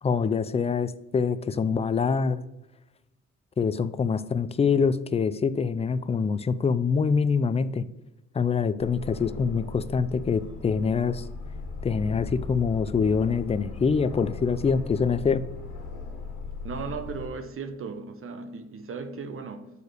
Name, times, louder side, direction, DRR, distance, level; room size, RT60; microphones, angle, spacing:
voice 1, 0.0-2.4 3.6-7.9 8.3-11.3 11.8-15.4, left 5 dB, 20° left, 14 dB, 0.4 m, -25 dB
Aircraft, 8.8-17.3, left 4 dB, 80° left, 1.7 m, -38 dB
voice 2, 16.6-19.7, right 5 dB, 45° right, 9 dB, 0.8 m, -36 dB
6.7 x 4.1 x 4.9 m, 0.99 s
cardioid pair, 90°, 30 cm